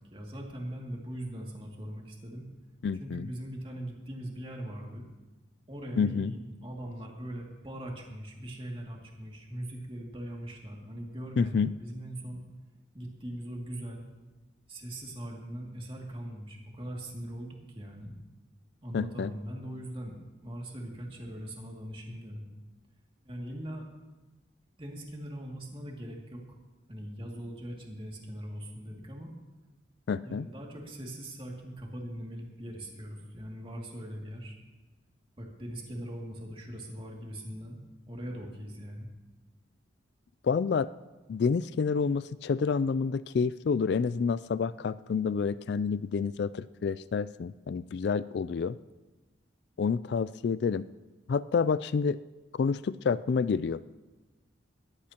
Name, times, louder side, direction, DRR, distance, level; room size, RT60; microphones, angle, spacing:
voice 1, 0.1-2.4 3.0-5.0 5.7-12.4 12.9-14.0 14.7-18.1 18.8-20.1 20.4-22.5 23.2-23.9 24.8-26.4 26.9-29.3 30.2-34.6 35.4-37.8 38.1-39.1, right 1 dB, 30° right, -1 dB, 2.4 m, -40 dB
voice 2, 2.8-3.3 6.0-6.3 11.4-11.7 18.9-19.3 30.1-30.5 40.4-40.9 41.3-48.8 49.8-50.9 51.3-52.2 52.5-53.8, left 5 dB, 60° left, 16 dB, 0.3 m, -28 dB
20.5 x 15.0 x 2.9 m, 1.2 s
head